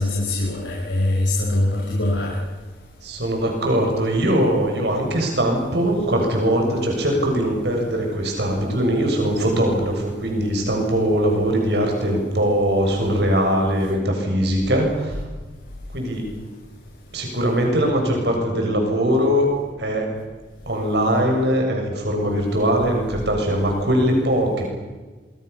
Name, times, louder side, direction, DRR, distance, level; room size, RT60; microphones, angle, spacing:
voice 1, 0.0-2.4, left 1 dB, 85° left, -4 dB, 5.5 m, -22 dB
voice 2, 3.0-15.2 15.9-16.3 17.1-19.5 19.8-20.1 20.7-24.7, equal, 65° right, 1 dB, 7.2 m, -21 dB
25.5 x 22.5 x 7.0 m, 1.3 s
head